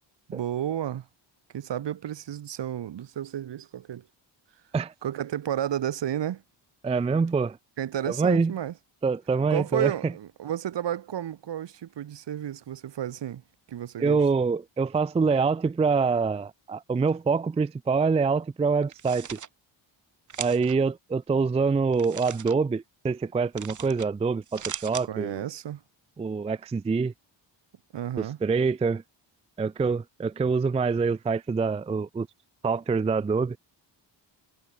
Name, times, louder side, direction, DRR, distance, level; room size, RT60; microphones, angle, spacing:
voice 1, 0.3-1.1 1.5-4.1 5.0-6.4 7.8-8.7 9.5-13.4 13.7-14.2 25.0-25.8 27.9-28.4, right 10 dB, 65° right, 1.3 m, -32 dB
voice 2, 6.8-7.6 8.2-8.5 9.0-9.9 14.0-19.4 20.4-25.4 26.2-27.1 28.2-29.0 29.6-32.3 32.6-33.6, right 4 dB, 15° right, 0.3 m, -25 dB
sound 1, 18.8-19.5 20.3-20.7 21.9-22.5 23.5-24.1 24.4-25.1, right 7 dB, 40° right, 1.1 m, -38 dB
cardioid pair, 105°, 46 cm